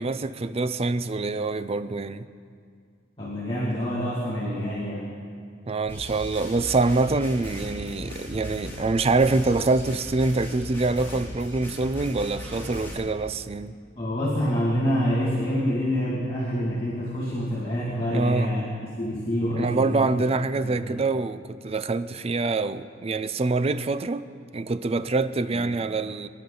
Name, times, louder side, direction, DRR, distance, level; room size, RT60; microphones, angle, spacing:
voice 1, 0.0-2.3 5.7-13.8 18.1-18.6 19.6-26.3, right 3 dB, 30° right, 0.4 m, -25 dB
voice 2, 3.2-5.1 13.9-18.6 19.0-20.2 20.6-21.0 25.5-25.6, equal, 30° left, 2.2 m, -27 dB
sound 1, 5.9-12.9, left 1 dB, 15° left, 3.1 m, -38 dB
24.5 x 10.5 x 3.9 m
head